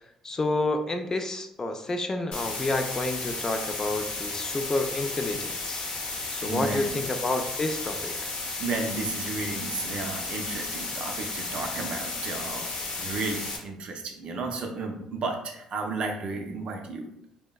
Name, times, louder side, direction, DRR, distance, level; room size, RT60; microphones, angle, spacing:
voice 1, 0.2-5.9 6.3-8.1, left 2 dB, 30° left, 6 dB, 0.3 m, -29 dB
sound 1, 2.3-13.6, left 3 dB, 65° left, 0.7 m, -33 dB
voice 2, 6.4-7.0 8.6-12.7 13.0-17.1, right 3 dB, 60° right, 3 dB, 0.5 m, -33 dB
3.3 x 2.0 x 2.2 m, 0.78 s
supercardioid pair, 70°, 2 cm